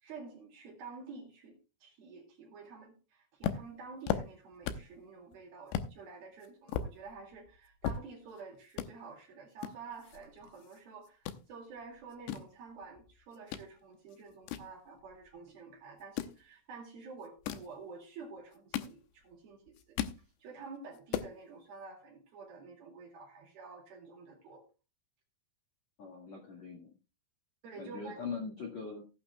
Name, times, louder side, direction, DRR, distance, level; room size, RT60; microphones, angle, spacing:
voice 1, 0.0-20.0 20.4-24.6 27.6-28.2, right 4 dB, 55° right, 1 dB, 3.6 m, -49 dB
sound 1, 3.4-5.0 5.3-5.4 5.7-5.9 6.4-8.4 8.7-8.9 9.6-10.8 11.0-11.4 12.0-13.7 14.1-15.4 16.0-16.4 17.2-17.7 18.4-19.3 19.7-20.2 20.6-20.7 20.9-21.3, left 9 dB, 85° left, 2.4 m, -37 dB
voice 2, 26.0-26.9 27.8-29.0, left 5 dB, 60° left, 0 dB, 1.9 m, -41 dB
17.0 x 10.5 x 2.3 m, 0.30 s
omnidirectional pair, 6.0 m